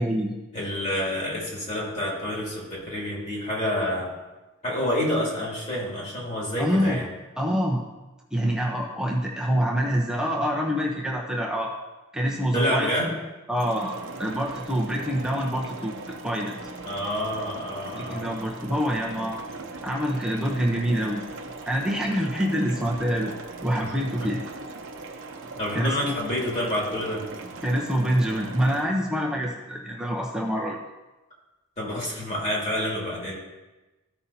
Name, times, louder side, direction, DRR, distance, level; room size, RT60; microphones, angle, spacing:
voice 1, 0.0-0.3 6.6-7.0 7.4-7.8 8.3-11.7 12.1-12.9 13.5-16.5 17.9-19.4 19.8-21.2 21.7-23.3 23.6-24.4 25.7-26.1 27.6-30.8, equal, 5° right, -2 dB, 0.7 m, -26 dB
voice 2, 0.5-4.1 4.6-7.1 12.5-13.2 16.8-18.3 23.8-23.9 25.6-27.2 31.8-33.3, left 1 dB, 30° left, -5 dB, 2.6 m, -28 dB
sound 1, 13.6-28.8, right 3 dB, 55° right, 0.8 m, -39 dB
14.0 x 5.6 x 2.8 m, 1.1 s
head